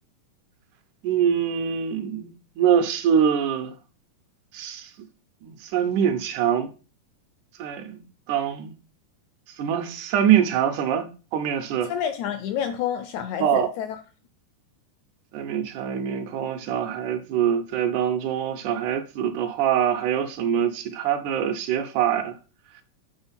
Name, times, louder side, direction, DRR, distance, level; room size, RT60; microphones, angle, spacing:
voice 1, 1.0-2.3 2.6-3.7 4.5-4.9 5.4-6.7 7.6-8.0 8.3-8.7 9.6-11.9 13.4-13.7 15.3-22.4, right 9 dB, 75° right, 2.1 m, -24 dB
voice 2, 11.9-14.0, left 9 dB, 80° left, 1.7 m, -29 dB
8.8 x 3.8 x 5.6 m
omnidirectional pair, 3.8 m